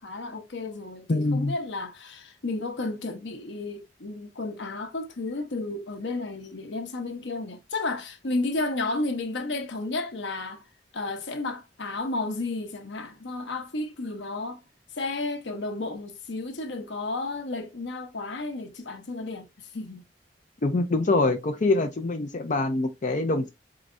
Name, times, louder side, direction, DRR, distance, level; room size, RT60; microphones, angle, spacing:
voice 1, 0.0-10.7 10.9-14.6 14.9-20.0, left 2 dB, 80° left, 0.9 m, -32 dB
voice 2, 1.1-1.5 20.6-23.5, left 2 dB, 45° left, 0.5 m, -24 dB
4.7 x 3.2 x 2.5 m
head